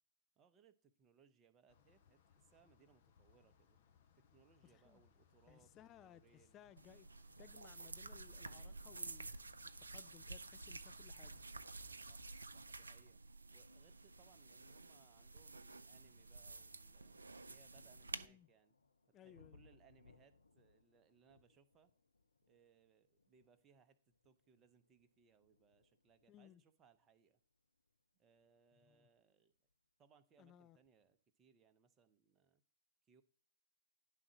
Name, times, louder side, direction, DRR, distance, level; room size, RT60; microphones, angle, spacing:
voice 1, 0.4-3.8 4.2-6.6 12.0-12.2 12.5-13.2 13.5-17.2 17.5-18.7 19.2-21.9 22.5-27.4 28.2-29.6 30.0-32.6 33.1-33.2, right 6 dB, 25° right, 0.7 m, -71 dB
sound 1, 1.7-12.5, left 7 dB, 50° left, 0.9 m, -72 dB
voice 2, 4.6-5.0 5.5-7.1 7.4-9.3 9.6-11.4 18.1-18.5 19.1-19.6 26.3-26.6 28.8-29.1 30.4-30.8, left 10 dB, 25° left, 0.4 m, -62 dB
sound 2, 6.8-18.3, right 3 dB, 75° right, 0.4 m, -51 dB
sound 3, 15.9-29.9 30.8-30.9, left 4 dB, 75° left, 0.6 m, -72 dB
10.5 x 3.7 x 5.9 m
figure-of-eight pair, 105°, 0 cm